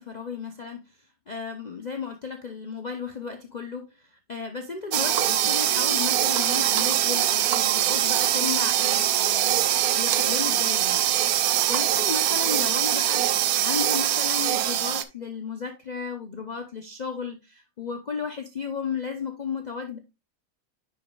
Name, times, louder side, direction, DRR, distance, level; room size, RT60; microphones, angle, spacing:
voice 1, 0.0-9.6 9.9-20.0, left 5 dB, 40° left, 0.7 m, -34 dB
sound 1, 4.9-15.0, right 12 dB, 80° right, 1.1 m, -23 dB
9.9 x 5.3 x 2.3 m
omnidirectional pair, 1.5 m